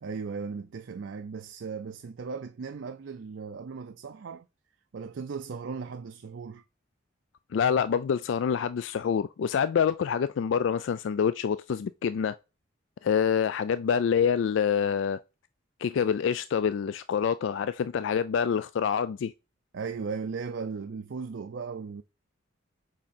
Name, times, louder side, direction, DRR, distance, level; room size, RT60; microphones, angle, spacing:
voice 1, 0.0-4.5 4.9-6.6 19.7-22.0, right 5 dB, 65° right, 0.4 m, -37 dB
voice 2, 7.5-12.4 13.0-15.2 15.8-19.3, left 7 dB, 65° left, 0.3 m, -26 dB
6.1 x 4.9 x 4.3 m
head